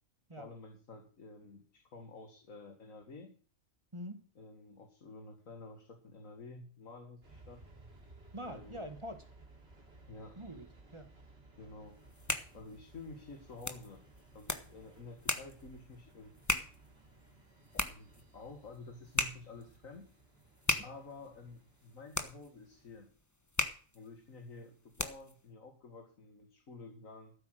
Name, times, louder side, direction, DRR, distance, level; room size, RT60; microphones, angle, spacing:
voice 1, 0.4-3.3 4.4-7.6 8.4-8.9 10.1-10.4 11.6-12.0 12.5-14.0 14.3-16.3 17.7-20.1 20.8-23.1 23.9-27.3, left 3 dB, 75° left, 5 dB, 2.3 m, -51 dB
sound 1, 7.2-23.1, right 2 dB, 50° right, 3.4 m, -59 dB
voice 2, 8.3-9.3 10.4-11.1, equal, 20° right, 8 dB, 1.8 m, -44 dB
sound 2, 11.9-25.4, left 2 dB, 15° left, 1.1 m, -39 dB
14.0 x 8.2 x 6.5 m, 0.41 s
omnidirectional pair, 1.4 m